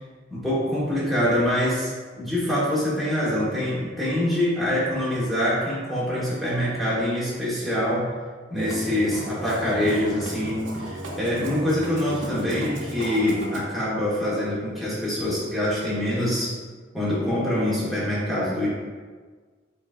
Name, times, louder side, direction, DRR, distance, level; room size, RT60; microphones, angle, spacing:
voice 1, 0.3-8.1 8.5-16.5 16.9-18.7, left 1 dB, ahead, -9 dB, 1.3 m, -25 dB
Musical instrument, 8.5-13.6, right 1 dB, 65° right, 0.7 m, -35 dB
4.9 x 4.0 x 2.4 m, 1.5 s
head